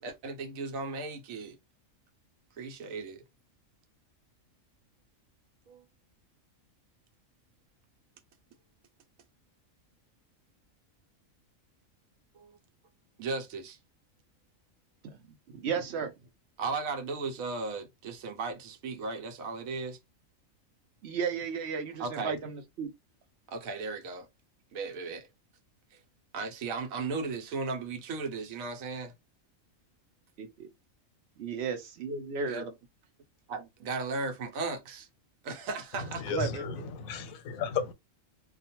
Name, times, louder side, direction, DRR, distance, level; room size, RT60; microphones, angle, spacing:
voice 1, 0.0-1.6 2.6-3.2 5.7-5.8 12.3-12.6 13.2-13.8 16.6-20.0 22.0-22.4 23.5-24.3 24.7-25.3 25.9-26.0 26.3-29.1 32.5-32.7 33.5-35.1 35.4-36.3, right 4 dB, 85° right, 1.1 m, -36 dB
voice 2, 15.0-16.1 21.0-22.9 30.4-30.7 31.4-32.7 36.3-36.9, right 5 dB, 65° right, 0.7 m, -34 dB
voice 3, 35.9-37.9, left 6 dB, 90° left, 1.0 m, -34 dB
2.4 x 2.2 x 2.8 m
omnidirectional pair, 1.4 m